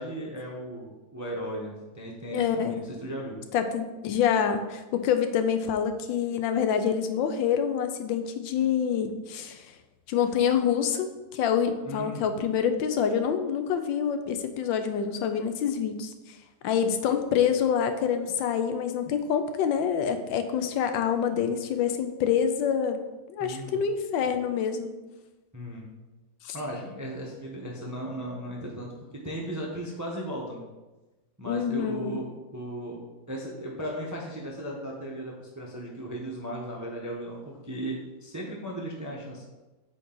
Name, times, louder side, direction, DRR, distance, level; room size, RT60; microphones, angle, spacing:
voice 1, 0.0-3.4 11.8-12.2 23.4-23.8 25.5-25.8 26.5-28.9 29.2-30.6 31.4-39.4, right 1 dB, 20° right, -2 dB, 0.5 m, -36 dB
voice 2, 2.3-2.7 3.5-9.7 10.1-16.1 16.6-23.0 23.3-24.9 26.4-26.6 31.5-32.2, left 7 dB, 80° left, 8 dB, 1.3 m, -26 dB
8.4 x 3.9 x 3.8 m, 1.1 s
omnidirectional pair, 2.1 m